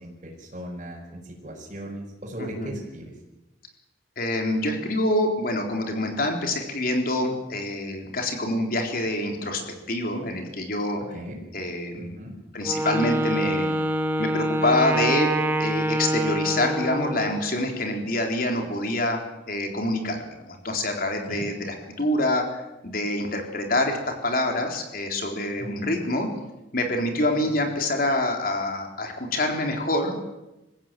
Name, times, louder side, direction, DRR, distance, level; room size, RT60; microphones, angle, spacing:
voice 1, 0.0-3.1 11.0-11.4 12.0-12.4 21.3-21.5 25.6-25.9 27.4-27.5, equal, 40° right, -6 dB, 5.5 m, -38 dB
voice 2, 2.4-2.7 4.2-9.6 9.9-11.0 11.5-12.2 12.5-13.7 14.2-15.3 15.6-19.2 19.5-26.3 26.7-30.2, left 1 dB, 55° left, 3 dB, 3.9 m, -26 dB
Wind instrument woodwind instrument, 12.6-17.5, right 1 dB, 10° right, 2.1 m, -26 dB
27.5 x 16.0 x 9.2 m, 0.96 s
head